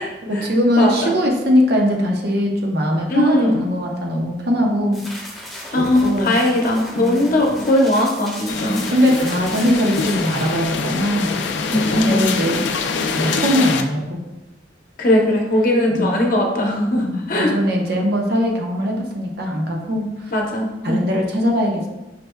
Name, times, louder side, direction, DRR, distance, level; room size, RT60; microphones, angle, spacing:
voice 1, 0.2-5.0 5.7-6.4 7.0-7.2 8.6-11.4 12.0-12.7 13.1-14.2 15.9-16.1 16.9-20.3 20.8-21.9, equal, 65° right, 0 dB, 0.8 m, -20 dB
voice 2, 0.8-1.1 3.1-3.6 5.7-8.9 11.7-12.3 15.0-17.5 20.3-21.0, left 1 dB, 50° left, 0 dB, 0.8 m, -19 dB
sound 1, 4.9-10.5, left 1 dB, ahead, 1.0 m, -36 dB
sound 2, 8.5-13.8, left 4 dB, 90° left, 0.4 m, -24 dB
5.7 x 3.3 x 2.2 m, 0.97 s
head